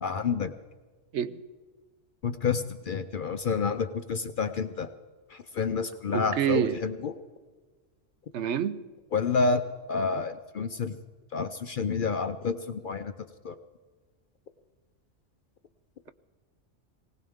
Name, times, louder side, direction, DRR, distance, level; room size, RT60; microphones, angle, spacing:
voice 1, 0.0-0.5 2.2-4.9 5.3-7.1 9.1-11.0 11.3-13.1 13.4-13.6, left 5 dB, 55° left, 0.6 m, -29 dB
voice 2, 6.1-6.8 8.3-8.8, right 9 dB, 70° right, 0.9 m, -27 dB
19.5 x 18.5 x 3.6 m
omnidirectional pair, 1.3 m